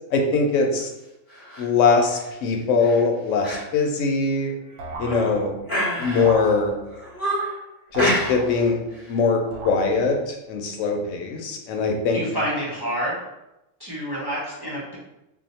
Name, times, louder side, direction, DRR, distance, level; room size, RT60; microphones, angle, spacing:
voice 1, 0.1-0.9 1.6-4.5 5.0-5.5 6.0-6.8 7.9-8.8 9.1-12.2, left 4 dB, 85° left, 2 dB, 0.9 m, -22 dB
sound 1, 1.3-1.6 2.1-2.3 2.8-3.0 3.4-3.6 4.0-4.1 4.7-5.2 5.7-6.5 6.9-7.6 8.0-8.6 8.9-9.1, equal, 20° left, 1.1 m, -27 dB
sound 2, 4.8-5.7 6.2-7.1 7.9-9.0 9.5-10.2, right 2 dB, 75° right, 0.9 m, -36 dB
voice 2, 5.1-5.4 12.1-13.2 13.8-15.0, equal, 30° right, -7 dB, 0.5 m, -28 dB
2.7 x 2.1 x 4.0 m, 0.93 s
omnidirectional pair, 1.3 m